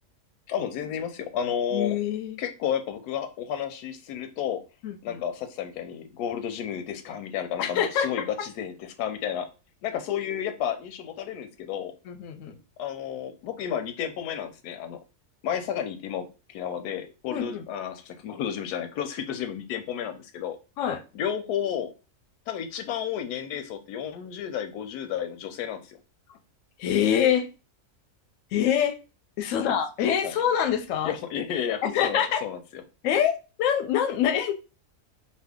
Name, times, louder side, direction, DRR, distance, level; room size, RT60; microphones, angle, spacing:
voice 1, 0.5-2.0 2.4-4.6 5.0-9.5 9.8-11.9 12.8-15.0 15.4-20.6 21.1-21.9 22.5-26.0 29.5-29.7 30.2-30.3 31.0-32.8, left 9 dB, 90° left, 8 dB, 1.1 m, -32 dB
voice 2, 1.7-2.4 4.8-5.2 7.6-8.1 12.1-12.6 17.3-17.7 20.8-21.0 26.8-27.5 28.5-29.0 29.4-31.1 31.8-32.4 33.0-33.3 33.6-34.5, left 9 dB, 70° left, 7 dB, 0.8 m, -25 dB
2.7 x 2.3 x 3.5 m, 0.31 s
omnidirectional pair, 1.6 m